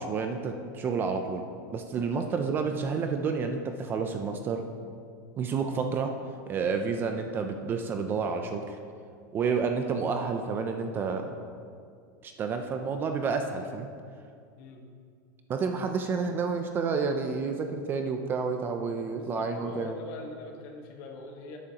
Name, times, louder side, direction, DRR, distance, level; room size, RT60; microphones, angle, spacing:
voice 1, 0.0-1.4 1.7-4.6 5.4-6.1 6.5-8.8 9.3-11.3 12.2-13.9 15.5-19.9, right 5 dB, 20° right, 5 dB, 0.4 m, -30 dB
voice 2, 19.1-21.6, left 2 dB, 45° left, 2 dB, 1.2 m, -43 dB
11.5 x 9.0 x 2.9 m, 2.2 s
supercardioid pair, 165°, 10 cm